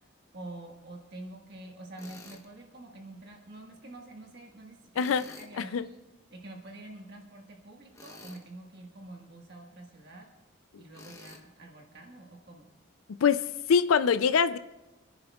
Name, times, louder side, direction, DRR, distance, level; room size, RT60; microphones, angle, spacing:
voice 1, 0.3-6.0 6.3-10.3 10.8-12.7, right 2 dB, 55° right, 1.5 m, -47 dB
Tools, 2.0-2.5 4.9-5.5 7.9-8.5 10.9-11.4, left 2 dB, 15° left, 1.0 m, -49 dB
voice 2, 5.0-5.9 13.1-14.6, left 6 dB, 80° left, 0.4 m, -25 dB
29.0 x 10.5 x 2.3 m
head